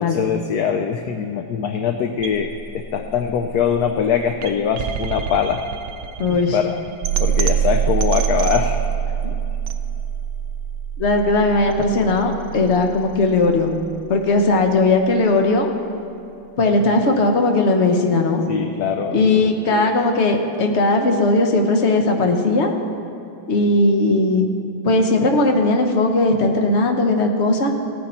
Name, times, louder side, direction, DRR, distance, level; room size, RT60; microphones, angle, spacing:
voice 1, 0.0-5.6 6.3-6.8 7.2-8.8 18.5-20.0, left 7 dB, 70° left, 6 dB, 1.0 m, -23 dB
sound 1, 2.2-14.2, right 8 dB, 65° right, 1.0 m, -25 dB
voice 2, 6.2-6.6 11.0-13.7 14.1-15.7 16.6-18.4 19.1-22.7 23.5-24.5 24.8-27.7, left 2 dB, 45° left, 4 dB, 1.1 m, -18 dB
17.0 x 9.2 x 4.4 m, 2.9 s
omnidirectional pair, 2.1 m